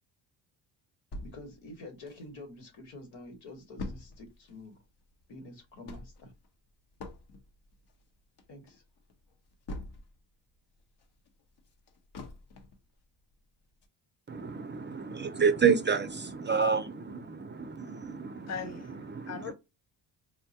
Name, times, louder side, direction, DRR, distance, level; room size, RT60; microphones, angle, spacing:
sound 1, 1.1-2.7 3.0-3.1 3.3-10.3 10.7-12.9 13.3-13.4 13.8-13.9, left 2 dB, 60° left, 0.9 m, -45 dB
voice 1, 1.2-4.8 5.3-6.3 8.5-8.8, left 2 dB, 80° left, 1.5 m, -47 dB
voice 2, 14.3-18.5 19.1-19.5, right 6 dB, 25° right, 0.4 m, -29 dB
voice 3, 18.5-19.5, left 6 dB, 35° left, 0.7 m, -39 dB
3.8 x 2.2 x 2.7 m
supercardioid pair, 70°, 45 cm